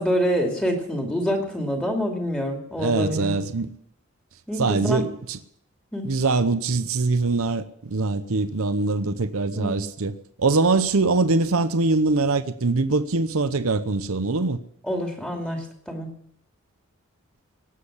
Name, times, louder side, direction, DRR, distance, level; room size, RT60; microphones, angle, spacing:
voice 1, 0.0-3.3 4.5-5.0 5.9-6.1 9.5-9.8 14.8-16.1, equal, 5° left, 2.5 m, -26 dB
voice 2, 2.8-3.7 4.6-5.4 6.0-10.1 10.4-14.6, right 3 dB, 70° right, 0.8 m, -23 dB
18.5 x 7.6 x 9.9 m
head